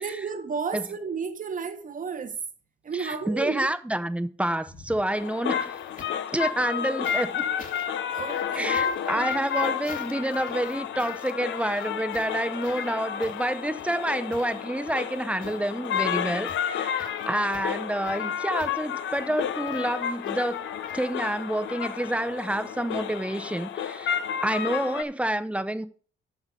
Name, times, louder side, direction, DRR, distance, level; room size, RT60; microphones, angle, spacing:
voice 1, 0.0-2.4 2.8-3.7 8.1-9.5, right 5 dB, 40° right, 1.5 m, -33 dB
voice 2, 2.9-5.8 6.3-7.4 8.5-20.7 20.9-25.9, right 1 dB, 5° right, 0.9 m, -28 dB
sound 1, 4.7-6.3 7.0-21.5 22.7-22.8, left 3 dB, 40° left, 2.5 m, -50 dB
sound 2, 5.1-25.0, left 8 dB, 70° left, 0.9 m, -31 dB
8.4 x 5.9 x 6.7 m
cardioid pair, 90°, 20 cm